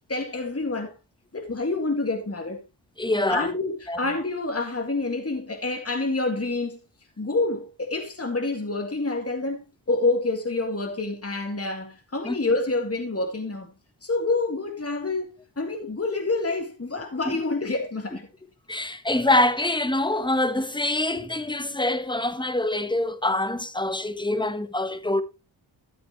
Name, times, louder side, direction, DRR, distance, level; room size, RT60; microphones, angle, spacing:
voice 1, 0.1-1.0 1.3-2.6 3.1-6.8 7.2-13.7 14.0-15.3 15.6-18.3, left 3 dB, 30° left, 2.1 m, -27 dB
voice 2, 3.0-3.5 3.9-4.0 12.2-12.4 17.3-17.4 18.7-25.2, left 1 dB, 10° left, 1.1 m, -25 dB
13.0 x 7.8 x 3.1 m
cardioid pair, 60°, 47 cm